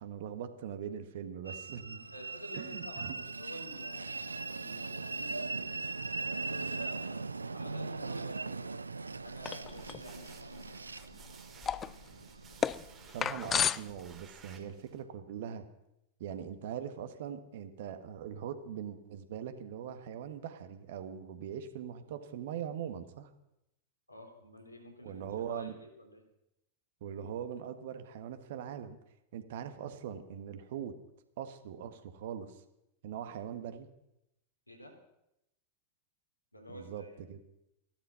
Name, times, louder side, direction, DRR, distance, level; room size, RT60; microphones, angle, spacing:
voice 1, 0.0-2.1 2.5-3.2 12.1-12.2 13.1-15.6 16.2-23.3 25.0-25.8 27.0-29.0 29.3-30.9 31.4-32.6 33.0-33.9 36.7-37.0 37.3-37.4, right 9 dB, 55° right, 9 dB, 1.5 m, -41 dB
Train, 1.5-13.9, right 3 dB, 80° right, 0.6 m, -40 dB
voice 2, 2.1-3.0 3.4-8.7 9.2-10.8 24.1-26.2 34.7-34.9 36.5-37.1, left 1 dB, 85° left, 1 dB, 3.8 m, -50 dB
sound 1, 9.1-15.0, right 4 dB, 25° right, 2.1 m, -56 dB
sound 2, 9.5-10.0 10.3-10.4 11.0-11.3 11.6-14.2, left 7 dB, 20° left, 0.4 m, -33 dB
15.5 x 12.0 x 5.7 m, 0.83 s
figure-of-eight pair, 90°, 0 cm